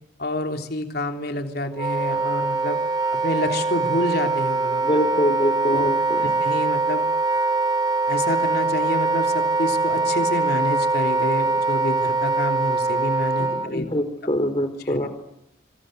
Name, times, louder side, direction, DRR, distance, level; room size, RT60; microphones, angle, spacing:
voice 1, 0.2-2.8 3.2-4.8 5.6-5.9 6.2-7.0 8.1-13.9 14.8-15.1, left 1 dB, 55° left, 5 dB, 3.4 m, -28 dB
Wind instrument woodwind instrument, 1.7-13.7, right 3 dB, 20° right, 1.8 m, -23 dB
voice 2, 4.8-6.3 13.4-15.1, equal, 30° left, 9 dB, 3.7 m, -24 dB
26.5 x 26.0 x 8.1 m, 0.82 s
head